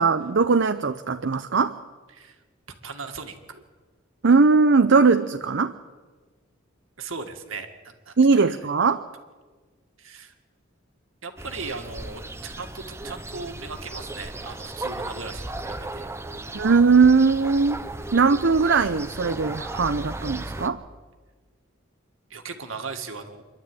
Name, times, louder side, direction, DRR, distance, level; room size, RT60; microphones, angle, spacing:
voice 1, 0.0-1.7 4.2-5.7 8.2-9.0 16.5-17.8 18.1-20.8, right 4 dB, 65° right, 8 dB, 0.7 m, -19 dB
voice 2, 2.1-2.4 2.8-3.6 7.0-8.1 8.5-8.6 10.0-10.3 11.2-16.1 16.4-16.7 22.3-23.4, right 4 dB, 90° right, 6 dB, 2.1 m, -38 dB
sound 1, 11.4-20.7, right 2 dB, 15° right, 0.8 m, -36 dB
26.0 x 12.0 x 9.1 m, 1.4 s
head